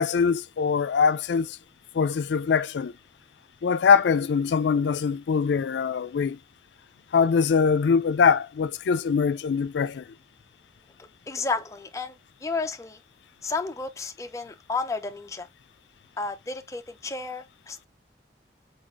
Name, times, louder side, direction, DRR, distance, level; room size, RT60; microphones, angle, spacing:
voice 1, 0.0-1.6 1.9-2.9 3.6-6.4 7.1-10.1, left 6 dB, 90° left, 0.4 m, -23 dB
voice 2, 11.0-13.0 13.4-15.5 16.2-17.8, left 3 dB, 15° left, 0.4 m, -32 dB
3.9 x 3.9 x 2.4 m
head